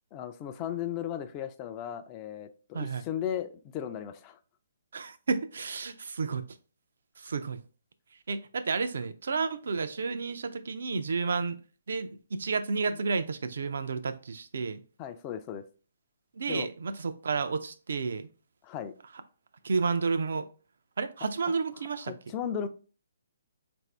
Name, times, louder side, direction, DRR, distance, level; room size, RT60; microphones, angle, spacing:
voice 1, 0.1-4.4 15.0-15.6 16.5-16.7 18.6-18.9 22.0-22.7, left 9 dB, 25° left, 0.4 m, -36 dB
voice 2, 2.7-3.1 4.9-6.4 7.2-7.6 8.3-11.6 11.9-14.8 16.4-18.3 19.6-20.5 21.0-22.1, right 4 dB, 70° right, 0.4 m, -31 dB
4.0 x 2.6 x 3.3 m
hypercardioid pair, 140°, 0 cm